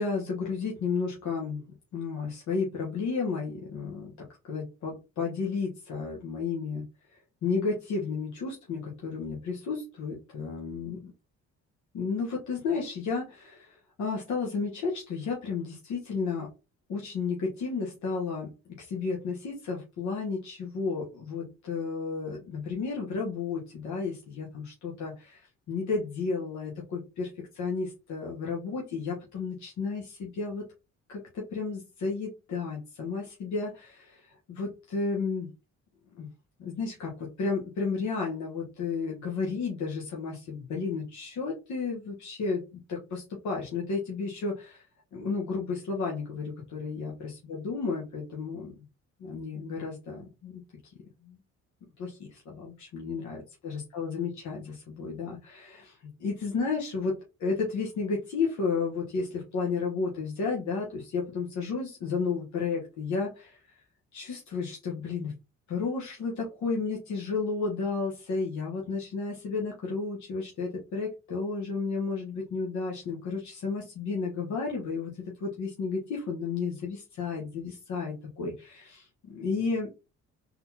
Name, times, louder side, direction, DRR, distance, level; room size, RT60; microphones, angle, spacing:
voice 1, 0.0-1.6 1.9-4.1 4.4-6.9 7.4-11.1 11.9-16.5 16.9-18.5 18.8-25.4 25.7-27.3 27.5-30.7 31.1-35.5 36.1-36.3 36.6-44.8 45.1-48.8 49.2-50.6 51.2-51.4 52.0-55.9 56.2-57.1 57.4-63.6 64.1-65.3 65.7-75.1 75.4-79.9, left 4 dB, 70° left, -2 dB, 1.3 m, -32 dB
4.0 x 3.8 x 2.8 m, 0.29 s
cardioid pair, 90°, 30 cm